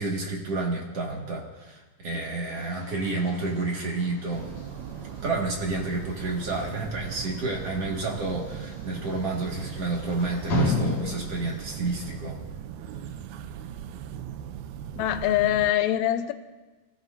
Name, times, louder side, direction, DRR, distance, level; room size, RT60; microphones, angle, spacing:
voice 1, 0.0-4.5 5.1-12.4, right 3 dB, 45° right, -2 dB, 2.6 m, -30 dB
sound 1, 2.5-11.6, left 1 dB, 50° left, 3.2 m, -35 dB
sound 2, 4.3-15.7, right 9 dB, 85° right, 2.6 m, -39 dB
voice 2, 15.0-16.3, left 12 dB, 80° left, 8 dB, 1.7 m, -23 dB
30.0 x 16.5 x 2.7 m, 1.2 s
omnidirectional pair, 4.3 m